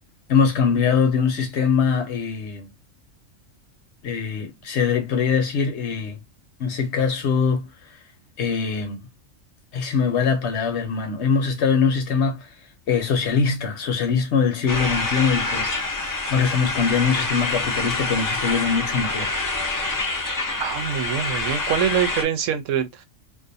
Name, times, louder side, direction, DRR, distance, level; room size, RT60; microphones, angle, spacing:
voice 1, 0.3-2.7 4.0-6.2 6.6-7.7 8.4-9.0 9.7-12.5 12.9-15.7 16.3-19.3, left 6 dB, 65° left, 0.9 m, -22 dB
sound 1, 14.7-22.2, left 2 dB, 30° left, 0.4 m, -26 dB
voice 2, 20.6-23.0, right 8 dB, 75° right, 0.9 m, -24 dB
2.5 x 2.2 x 2.6 m
omnidirectional pair, 1.3 m